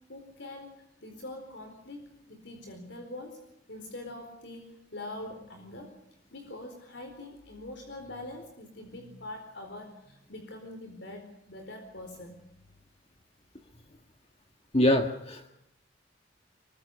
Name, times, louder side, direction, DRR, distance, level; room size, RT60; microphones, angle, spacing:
voice 1, 0.1-3.4 3.7-5.9 6.3-12.4, left 1 dB, 65° left, 4 dB, 4.4 m, -44 dB
voice 2, 14.7-15.5, left 1 dB, 35° left, 5 dB, 1.7 m, -24 dB
25.5 x 23.5 x 6.6 m, 0.78 s
head